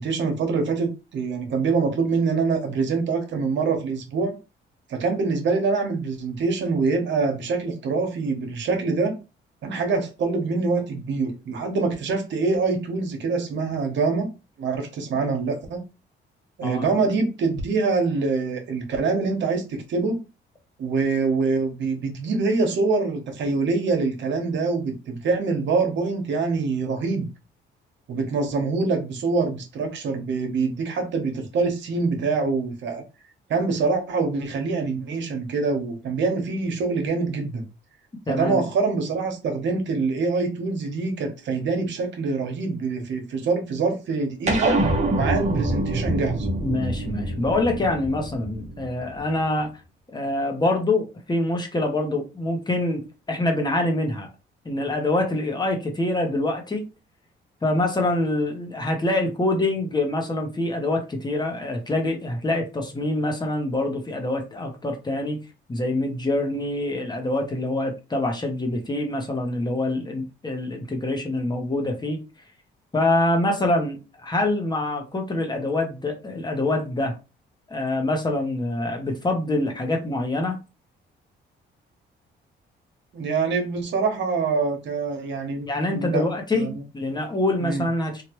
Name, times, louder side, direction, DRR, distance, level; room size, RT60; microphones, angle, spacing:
voice 1, 0.0-4.4 4.9-9.2 9.6-14.3 14.6-15.8 16.6-20.2 20.8-27.3 28.1-33.0 33.5-37.6 38.3-44.8 45.1-46.5 83.1-86.2 86.5-86.7 87.6-87.8, right 4 dB, 70° right, 1.0 m, -25 dB
voice 2, 38.3-38.7 46.6-49.7 50.1-54.3 54.6-56.8 57.6-65.4 65.7-72.2 72.9-77.1 77.7-80.6 85.6-88.2, left 2 dB, 20° left, 0.9 m, -25 dB
sound 1, 44.5-49.2, right 2 dB, 35° right, 1.0 m, -25 dB
3.2 x 2.4 x 3.0 m
cardioid pair, 90°, 20 cm